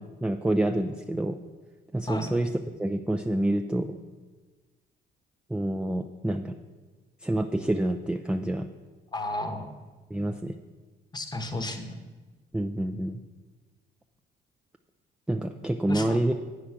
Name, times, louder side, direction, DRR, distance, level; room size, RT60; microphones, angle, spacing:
voice 1, 0.0-1.4 1.9-2.5 2.8-4.0 5.5-6.5 7.2-8.7 10.1-10.5 12.5-13.2 15.3-16.3, right 1 dB, 5° right, 4 dB, 0.3 m, -27 dB
voice 2, 9.1-9.7 11.1-12.0 15.9-16.3, left 1 dB, 20° left, 6 dB, 0.9 m, -33 dB
8.7 x 4.8 x 5.8 m, 1.3 s
cardioid pair, 90°, 20 cm